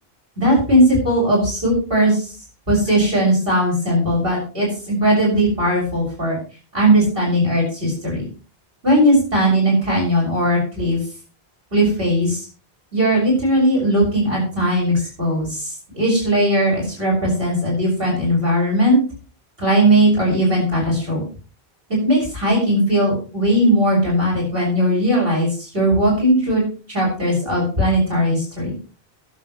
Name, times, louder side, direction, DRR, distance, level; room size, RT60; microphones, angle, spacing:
voice 1, 0.4-2.3 2.7-6.4 6.7-8.2 8.8-11.0 11.7-12.5 12.9-19.0 19.6-21.2 22.0-26.6 26.9-28.7, equal, 65° right, -2 dB, 7.3 m, -18 dB
22.0 x 7.8 x 3.2 m, 0.36 s
omnidirectional pair, 1.0 m